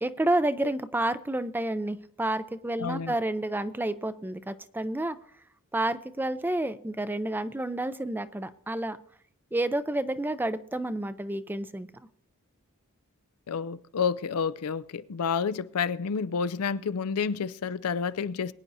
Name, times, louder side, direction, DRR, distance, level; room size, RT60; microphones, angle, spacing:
voice 1, 0.0-5.2 5.7-9.0 9.5-11.9, right 1 dB, 10° right, 0.4 m, -30 dB
voice 2, 2.8-3.1 13.5-18.5, left 6 dB, 85° left, 0.5 m, -29 dB
22.5 x 9.8 x 2.7 m
head